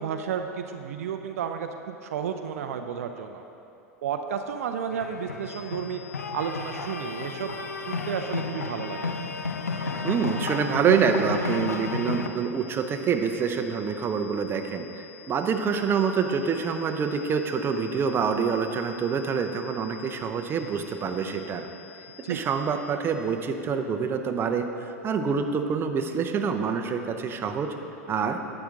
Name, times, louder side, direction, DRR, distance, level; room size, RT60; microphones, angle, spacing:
voice 1, 0.0-3.4 4.0-6.0 6.3-7.5 7.9-9.1 22.2-22.4, right 7 dB, 65° right, 6 dB, 0.5 m, -32 dB
sound 1, 4.9-12.3, left 4 dB, 85° left, 0.6 m, -32 dB
sound 2, 5.4-23.2, left 10 dB, 55° left, 2.2 m, -49 dB
voice 2, 10.0-21.7 22.3-27.7 28.1-28.4, right 6 dB, 25° right, 5 dB, 0.7 m, -26 dB
11.5 x 7.8 x 3.7 m, 2.8 s
figure-of-eight pair, 90°, 8 cm